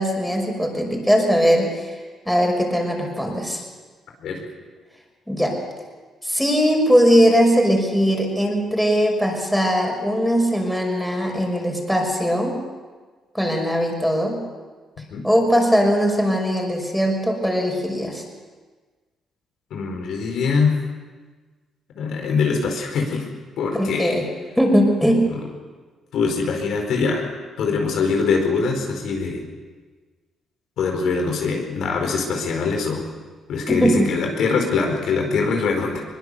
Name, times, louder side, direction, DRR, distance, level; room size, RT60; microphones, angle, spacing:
voice 1, 0.0-2.0 2.3-3.6 5.3-5.5 6.2-12.6 13.3-14.4 15.2-18.2 23.7-24.2 24.6-25.3 33.7-34.1, equal, ahead, 1 dB, 5.9 m, -20 dB
voice 2, 19.7-20.7 22.0-23.3 23.6-24.2 25.3-25.4 26.1-27.2 27.6-29.4 30.8-33.0 33.5-36.0, left 4 dB, 75° left, 2 dB, 4.5 m, -23 dB
22.0 x 20.5 x 6.9 m, 1.4 s
cardioid pair, 90°, 0 cm